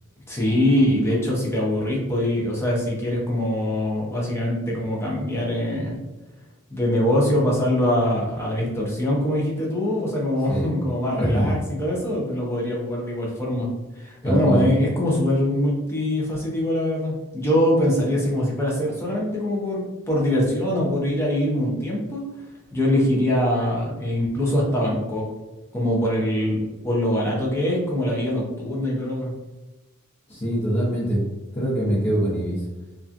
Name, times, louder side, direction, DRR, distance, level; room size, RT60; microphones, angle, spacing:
voice 1, 0.3-6.0 6.7-13.7 14.0-22.2 22.7-25.3 25.7-29.3, left 1 dB, 10° left, -4 dB, 0.7 m, -23 dB
voice 2, 11.2-11.5 14.2-14.6 30.3-31.2 31.5-32.6, right 1 dB, 30° left, -11 dB, 1.0 m, -23 dB
2.9 x 2.4 x 2.5 m, 1.1 s
head